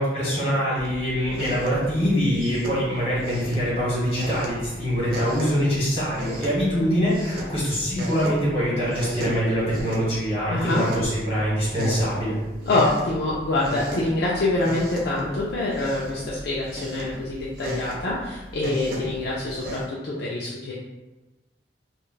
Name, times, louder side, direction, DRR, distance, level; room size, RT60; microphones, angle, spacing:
voice 1, 0.0-12.4, equal, 35° left, -7 dB, 1.4 m, -24 dB
sound 1, 0.7-19.8, equal, 55° right, 0.5 m, -35 dB
voice 2, 10.5-10.9 12.6-20.7, left 2 dB, 60° left, -6 dB, 0.4 m, -25 dB
3.1 x 2.3 x 2.3 m, 1.1 s
head